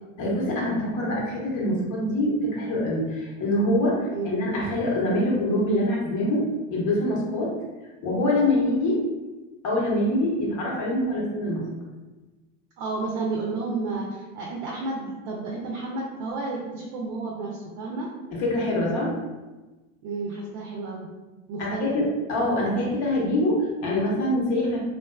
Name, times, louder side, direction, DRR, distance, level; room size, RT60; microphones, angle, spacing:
voice 1, 0.2-7.5 8.0-9.0 9.6-11.6 18.3-19.1 21.6-24.8, left 1 dB, 45° left, -3 dB, 1.0 m, -24 dB
voice 2, 12.8-18.1 20.0-21.1 21.5-21.9, right 3 dB, 50° right, -2 dB, 0.5 m, -31 dB
2.5 x 2.2 x 2.2 m, 1.2 s
hypercardioid pair, 95°, 40 cm